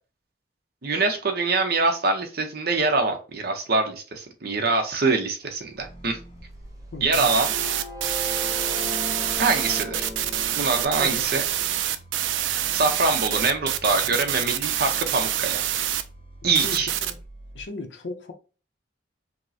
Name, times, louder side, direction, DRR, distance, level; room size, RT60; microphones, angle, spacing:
voice 1, 0.8-6.2 7.0-7.5 9.4-10.1 10.6-11.4 12.4-15.6 16.4-16.9, right 3 dB, 55° right, 0.8 m, -24 dB
sound 1, 5.8-17.6, right 1 dB, 30° left, 0.5 m, -45 dB
sound 2, 5.9-11.5, left 1 dB, 20° right, 0.6 m, -37 dB
voice 2, 6.9-7.3 11.0-11.3 16.4-17.1 17.5-18.3, left 3 dB, 80° left, 0.7 m, -36 dB
sound 3, 7.1-16.0 16.6-17.1, right 11 dB, 80° right, 0.4 m, -26 dB
5.0 x 2.1 x 2.7 m
head